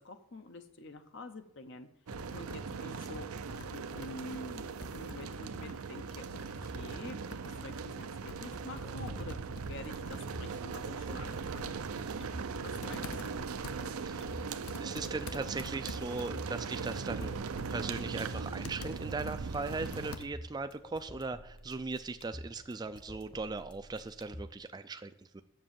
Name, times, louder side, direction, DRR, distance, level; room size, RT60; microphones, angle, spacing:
voice 1, 0.0-1.9 2.3-3.3 3.7-6.2 6.6-11.9 12.6-13.1, left 2 dB, 55° left, 8 dB, 0.7 m, -48 dB
Computer keyboard, 2.1-20.6, left 4 dB, 90° left, 0.8 m, -49 dB
sound 1, 2.1-20.2, right 5 dB, 85° right, 0.5 m, -39 dB
sound 2, 8.6-24.6, equal, 25° left, 0.9 m, -51 dB
voice 2, 14.0-14.4 14.8-17.4 17.7-25.4, right 3 dB, 20° right, 9 dB, 0.3 m, -39 dB
7.5 x 6.7 x 7.4 m, 0.76 s
head